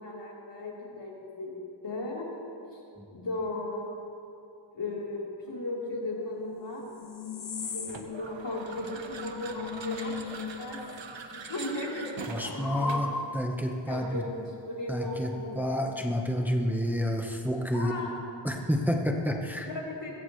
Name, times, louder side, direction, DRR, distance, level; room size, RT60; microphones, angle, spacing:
voice 1, 0.0-2.2 2.7-2.8 3.1-4.0 4.7-6.8 7.7-10.8 11.1-13.0 13.9-15.6 17.7-18.1 19.6-20.1, left 2 dB, 65° left, -5 dB, 4.0 m, -36 dB
sound 1, 5.5-11.0 11.3-13.7 15.4-16.4, left 5 dB, 45° left, 1.0 m, -39 dB
sound 2, 7.9-13.2, right 4 dB, 70° right, 1.3 m, -43 dB
voice 2, 12.3-14.2 14.9-18.1 18.4-19.7, equal, 5° right, 1 dB, 1.3 m, -30 dB
21.5 x 16.5 x 3.3 m, 2.7 s
cardioid pair, 50°, 46 cm